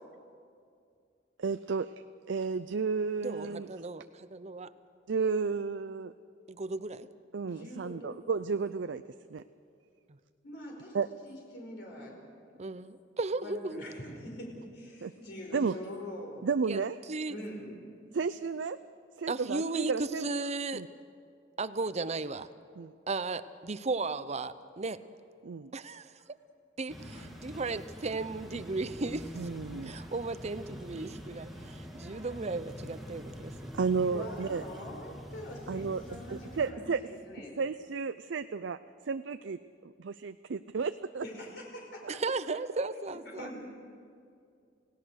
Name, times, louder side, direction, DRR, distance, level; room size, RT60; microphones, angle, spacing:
voice 1, 1.4-1.9 2.3-3.7 5.1-6.1 7.3-9.0 9.3-9.4 10.9-11.1 15.0-15.1 15.5-15.8 16.4-17.0 18.1-18.8 19.2-20.3 20.7-20.9 22.8-22.9 25.4-25.7 29.4-29.9 33.7-34.6 35.7-36.0 36.3-37.0 37.6-38.8 39.1-41.2, right 5 dB, 75° right, 11 dB, 0.5 m, -32 dB
voice 2, 3.2-4.7 6.5-7.1 12.6-13.8 16.7-16.8 17.1-17.4 19.3-20.8 21.6-22.5 23.1-25.0 25.7-26.1 26.8-29.3 29.8-33.7 42.1-43.5, right 3 dB, 35° right, 13 dB, 0.7 m, -35 dB
voice 3, 7.5-8.2 10.4-11.0 11.2-12.2 13.4-16.5 17.3-17.8 27.1-27.2 34.0-37.5 41.2-42.2 43.4-43.7, left 1 dB, 65° left, 0 dB, 4.9 m, -44 dB
sound 1, 26.9-36.7, equal, ahead, 2.1 m, -45 dB
29.0 x 17.5 x 6.5 m, 2.3 s
head